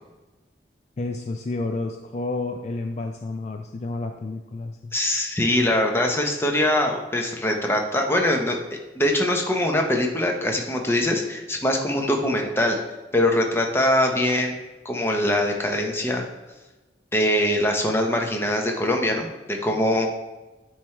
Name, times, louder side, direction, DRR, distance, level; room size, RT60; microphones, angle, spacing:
voice 1, 1.0-4.9, left 2 dB, 40° left, 4 dB, 0.3 m, -30 dB
voice 2, 4.9-8.6 9.0-12.8 13.1-14.6 14.8-16.2 17.1-20.1, left 1 dB, 15° left, 2 dB, 0.7 m, -22 dB
9.3 x 3.2 x 4.4 m, 1.1 s
head